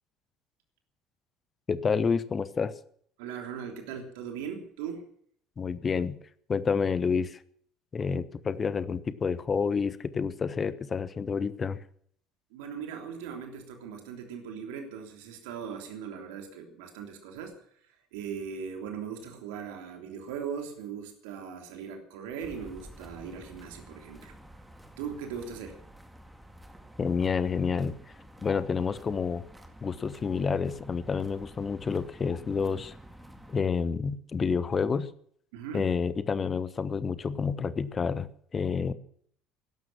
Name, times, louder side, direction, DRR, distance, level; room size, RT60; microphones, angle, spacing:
voice 1, 1.7-2.7 5.6-6.2 6.5-7.4 7.9-11.8 27.0-28.0 28.4-29.4 29.8-33.0 33.5-35.1 35.7-38.9, left 5 dB, 30° left, 16 dB, 1.0 m, -29 dB
voice 2, 3.2-5.0 12.5-17.5 18.1-24.3 25.0-25.8 35.5-35.9, right 7 dB, 65° right, 3 dB, 3.2 m, -39 dB
sound 1, 22.4-33.6, equal, 5° right, 2.2 m, -50 dB
17.0 x 12.5 x 6.0 m, 0.62 s
figure-of-eight pair, 60°, 0 cm